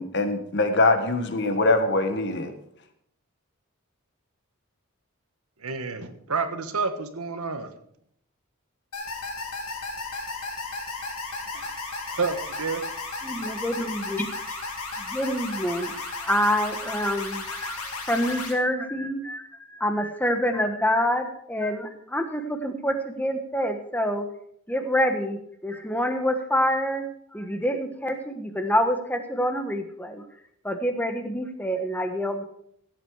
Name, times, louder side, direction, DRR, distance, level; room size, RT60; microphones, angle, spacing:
voice 1, 0.0-2.5, left 2 dB, 50° left, 7 dB, 1.5 m, -23 dB
voice 2, 5.6-7.7 11.5-11.7 12.1-12.8, right 4 dB, 85° right, 9 dB, 1.4 m, -29 dB
sound 1, 8.9-18.5, left 3 dB, 90° left, 3.1 m, -34 dB
voice 3, 13.2-14.3 15.0-24.3 24.7-27.1 27.3-30.2 30.6-32.4, equal, 10° left, 6 dB, 1.3 m, -27 dB
16.0 x 8.6 x 4.8 m, 0.70 s
head